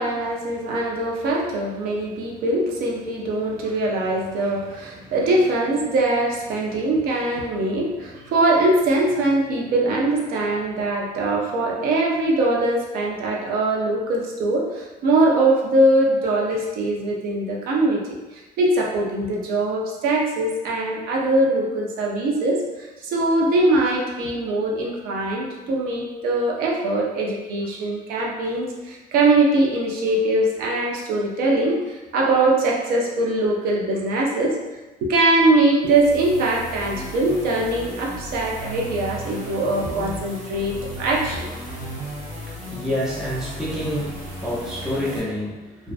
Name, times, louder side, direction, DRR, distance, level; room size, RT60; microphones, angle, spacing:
voice 1, 0.0-34.6 35.0-41.6, right 2 dB, 70° right, -2 dB, 0.5 m, -22 dB
sound 1, 35.8-45.2, equal, 45° right, 0.8 m, -35 dB
voice 2, 42.0-45.9, equal, 5° right, -7 dB, 0.4 m, -29 dB
2.5 x 2.0 x 2.4 m, 1.1 s
cardioid pair, 175°, 16 cm